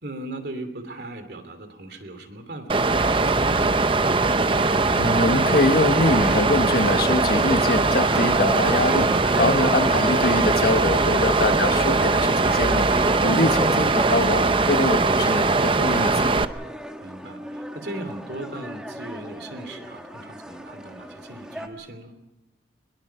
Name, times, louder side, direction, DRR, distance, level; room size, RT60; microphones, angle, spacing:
voice 1, 0.0-4.0 10.9-11.2 17.0-22.1, right 1 dB, 65° right, 8 dB, 2.9 m, -38 dB
Water, 2.7-16.4, right 3 dB, 30° right, 0.7 m, -21 dB
sound 1, 2.9-15.4, equal, 35° left, 4.4 m, -36 dB
voice 2, 5.0-9.1 9.4-12.9 13.2-16.4, left 2 dB, 55° left, 7 dB, 1.5 m, -24 dB
sound 2, 5.9-21.7, equal, 5° right, 1.6 m, -36 dB
24.0 x 22.0 x 5.8 m, 0.99 s
head